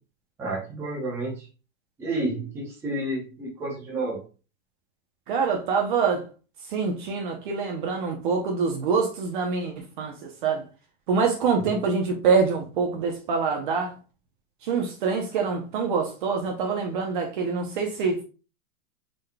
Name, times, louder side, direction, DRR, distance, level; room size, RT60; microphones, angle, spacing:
voice 1, 0.4-1.4 2.0-4.2, right 2 dB, 5° right, -5 dB, 0.8 m, -30 dB
voice 2, 5.3-6.3 6.7-10.6 11.1-13.9 14.6-18.2, right 5 dB, 40° right, 2 dB, 0.7 m, -25 dB
4.8 x 3.9 x 2.2 m, 0.34 s
supercardioid pair, 165°, 41 cm